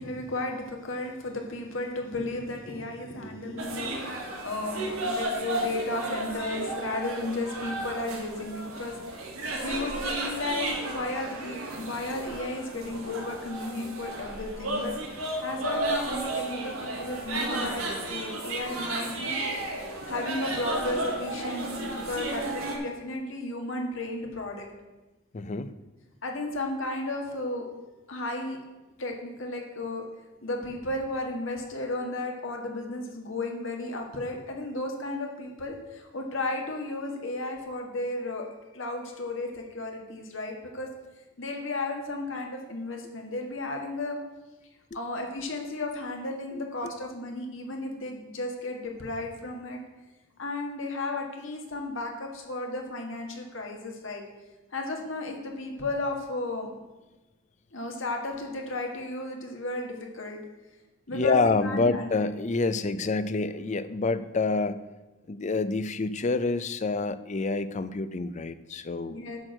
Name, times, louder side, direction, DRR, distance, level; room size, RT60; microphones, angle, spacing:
voice 1, 0.0-8.9 9.6-14.9 15.4-19.3 20.0-24.6 26.2-27.7 28.1-28.6 29.0-30.0 30.4-38.5 38.7-40.9 41.4-44.2 44.9-49.8 50.4-54.2 54.7-56.7 57.7-60.4 61.1-62.1 69.1-69.4, left 2 dB, 65° left, 2 dB, 1.7 m, -34 dB
sound 1, 3.6-22.8, right 2 dB, 85° right, 2.2 m, -33 dB
voice 2, 25.3-25.7 46.5-46.6 61.1-64.8 65.3-69.2, left 3 dB, 35° left, 14 dB, 0.5 m, -27 dB
10.5 x 4.5 x 7.7 m, 1.1 s
head